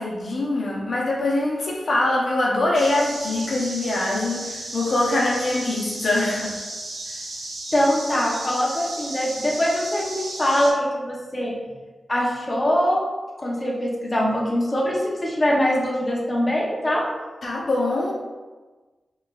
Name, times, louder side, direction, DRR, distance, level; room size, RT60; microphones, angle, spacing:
voice 1, 0.0-6.6 17.4-18.1, left 2 dB, 65° left, -4 dB, 0.7 m, -23 dB
sound 1, 2.7-10.7, right 2 dB, 85° right, 0.7 m, -34 dB
voice 2, 7.7-11.6 12.1-13.0 13.4-17.1, equal, 25° left, -4 dB, 0.8 m, -23 dB
4.4 x 3.1 x 2.3 m, 1.3 s
wide cardioid pair, 80°, 0 cm